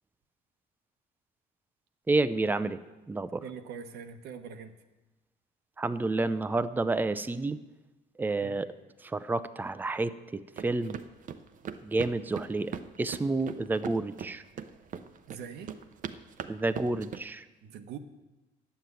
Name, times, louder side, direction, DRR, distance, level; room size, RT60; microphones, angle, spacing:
voice 1, 2.1-2.8 3.1-3.4 5.8-7.6 8.2-8.7 9.0-11.0 11.8-14.4 16.5-17.4, right 3 dB, 10° right, 12 dB, 0.5 m, -30 dB
voice 2, 3.4-4.8 8.4-8.6 15.3-15.8 17.6-18.0, right 7 dB, 75° right, 8 dB, 1.0 m, -43 dB
sound 1, 10.6-17.2, right 7 dB, 50° right, 0.7 m, -40 dB
10.0 x 7.5 x 8.0 m, 1.1 s
cardioid pair, 110°, 17 cm